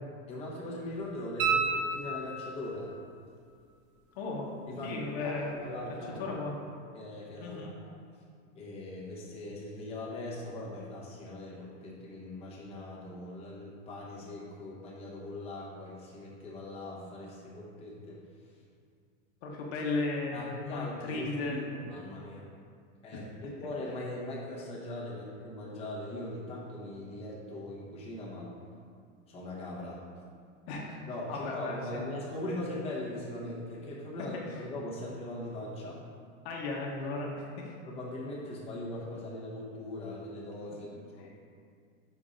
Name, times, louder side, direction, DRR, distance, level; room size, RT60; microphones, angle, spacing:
voice 1, 0.3-2.9 4.7-4.9 5.2-6.3 6.9-7.9 8.5-18.2 20.3-22.5 23.0-28.5 29.3-30.0 31.1-36.0 37.9-40.9 41.2-41.3, left 1 dB, 15° left, -5 dB, 0.8 m, -40 dB
sound 1, 1.4-2.7 5.5-5.6, right 5 dB, 30° right, 0.6 m, -30 dB
voice 2, 4.1-4.5 4.8-5.7 6.2-6.6 7.4-7.7 19.4-21.6 23.1-23.2 30.7-31.0 31.3-32.1 34.5-34.6 36.4-37.7 40.7-41.0 41.3-41.4, left 3 dB, 55° left, -2 dB, 1.0 m, -36 dB
5.4 x 3.8 x 5.1 m, 2.2 s
supercardioid pair, 165°, 37 cm